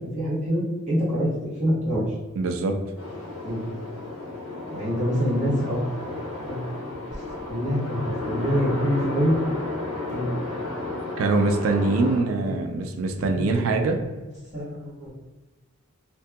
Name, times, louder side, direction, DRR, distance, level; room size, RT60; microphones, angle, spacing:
voice 1, 0.1-2.0 3.4-3.7 4.7-5.8 6.4-6.6 7.5-9.4 10.1-10.6 12.1-12.6 13.2-14.1 14.5-15.1, equal, 35° right, -9 dB, 1.3 m, -26 dB
voice 2, 2.4-2.8 11.2-14.0, right 3 dB, 65° right, 4 dB, 0.3 m, -23 dB
sound 1, 3.0-12.2, left 2 dB, 80° left, 0.8 m, -33 dB
2.7 x 2.6 x 2.2 m, 1.2 s
head